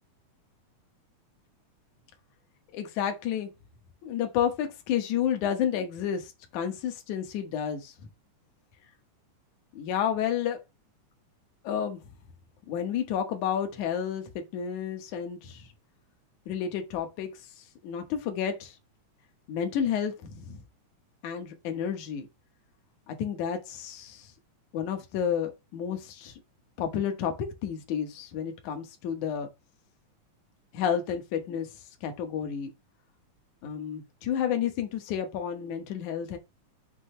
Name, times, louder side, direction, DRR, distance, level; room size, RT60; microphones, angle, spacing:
voice 1, 2.7-3.5 4.0-7.9 9.7-10.6 11.6-12.0 12.7-15.7 16.5-17.3 17.8-18.7 19.5-20.6 21.2-22.3 23.1-24.3 24.7-26.3 26.8-29.5 30.7-31.7 32.0-32.7 33.6-36.4, left 8 dB, 75° left, 2.5 m, -31 dB
8.2 x 2.9 x 5.5 m
omnidirectional pair, 3.6 m